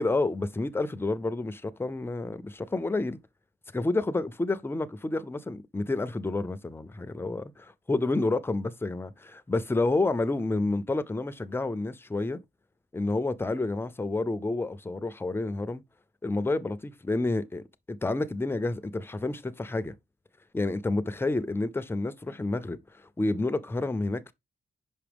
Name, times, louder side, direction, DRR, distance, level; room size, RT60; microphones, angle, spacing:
voice 1, 0.0-3.2 3.7-12.4 12.9-15.8 16.2-19.9 20.5-24.3, left 2 dB, 10° left, 0.4 m, -29 dB
5.9 x 5.5 x 3.4 m
wide cardioid pair, 155°, 20 cm